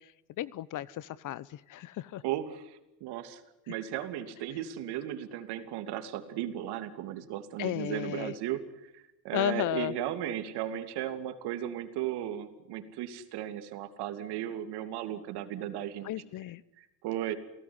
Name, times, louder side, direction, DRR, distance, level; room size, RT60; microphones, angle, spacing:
voice 1, 0.4-2.2 7.6-8.3 9.3-9.9 16.1-16.6, left 13 dB, 40° left, 21 dB, 0.9 m, -33 dB
voice 2, 2.2-3.4 3.7-8.6 8.9-16.1 16.8-17.3, right 11 dB, 55° right, 9 dB, 3.1 m, -36 dB
29.0 x 17.5 x 10.0 m, 0.89 s
supercardioid pair, 100°, 46 cm